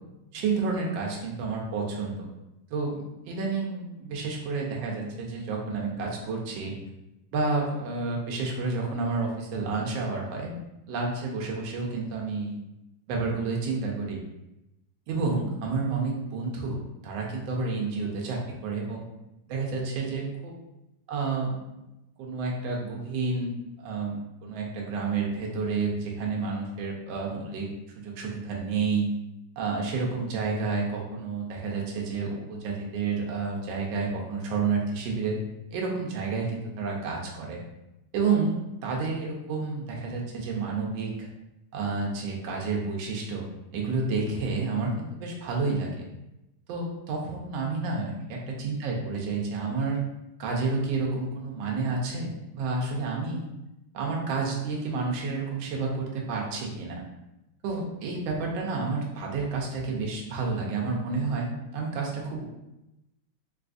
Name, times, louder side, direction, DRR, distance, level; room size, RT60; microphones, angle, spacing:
voice 1, 0.3-2.3 2.7-6.7 7.3-10.6 10.9-12.6 13.1-14.2 15.1-19.0 19.5-20.5 21.1-21.6 22.2-23.5 23.8-27.7 28.0-29.1 29.6-35.4 35.7-37.6 38.1-41.3 41.7-43.4 43.7-46.1 46.7-50.0 50.4-53.5 53.9-57.0 57.6-62.5, right 4 dB, 75° right, -1 dB, 1.4 m, -30 dB
4.0 x 2.3 x 2.5 m, 0.92 s
omnidirectional pair, 2.2 m